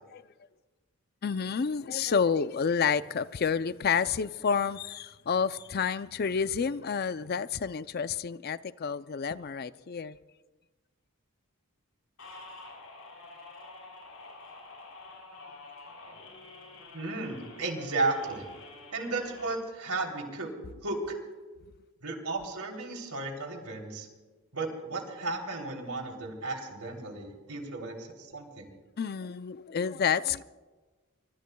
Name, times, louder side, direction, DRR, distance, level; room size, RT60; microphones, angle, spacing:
voice 1, 1.2-10.2 29.0-30.4, left 6 dB, 45° left, 0.4 m, -29 dB
sound 1, 12.2-19.5, left 3 dB, 65° left, 7.0 m, -48 dB
voice 2, 16.9-18.5 18.9-20.5 20.8-21.2 22.0-24.1 24.5-28.7, right 3 dB, 90° right, 3.2 m, -34 dB
24.5 x 24.0 x 2.3 m
head